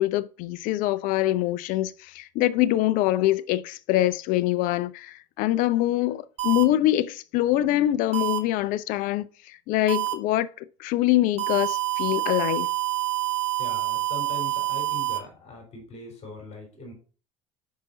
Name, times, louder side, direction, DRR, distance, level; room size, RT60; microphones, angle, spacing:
voice 1, 0.0-10.5 10.8-12.7, left 14 dB, 60° left, 0.5 m, -24 dB
sound 1, 6.4-6.6 8.1-8.4 9.9-10.1 11.4-15.2, right 19 dB, 40° right, 1.0 m, -27 dB
voice 2, 13.6-16.9, left 3 dB, 40° left, 3.8 m, -41 dB
5.6 x 5.2 x 3.9 m
hypercardioid pair, 65°, 16 cm